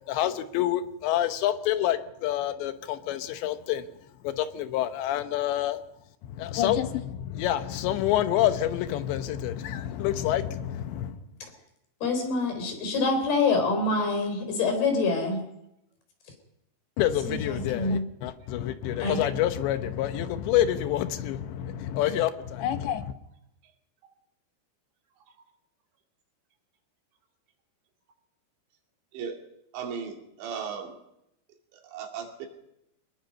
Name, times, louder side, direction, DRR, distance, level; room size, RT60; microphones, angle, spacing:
voice 1, 0.1-3.9 4.2-5.8 6.2-11.2 17.0-23.1, left 12 dB, 85° left, 3.3 m, -27 dB
voice 2, 12.0-15.4 17.3-18.0 19.0-19.2, left 3 dB, 65° left, 5.7 m, -26 dB
voice 3, 29.7-31.0 31.7-32.5, right 6 dB, 90° right, 4.7 m, -36 dB
24.0 x 20.0 x 5.4 m
omnidirectional pair, 5.0 m